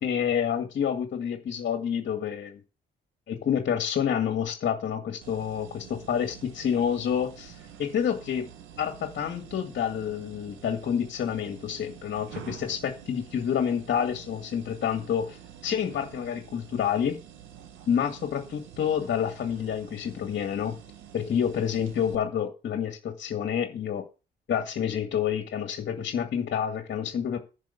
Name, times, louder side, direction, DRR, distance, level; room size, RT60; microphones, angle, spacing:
voice 1, 0.0-2.6 3.3-8.5 8.8-17.2 17.9-20.8 21.1-24.0 24.5-27.4, left 8 dB, 60° left, 5 dB, 2.1 m, -28 dB
sound 1, 5.2-22.1, right 9 dB, 90° right, 1.9 m, -48 dB
10.5 x 6.3 x 7.2 m, 0.32 s
cardioid pair, 90°, 20 cm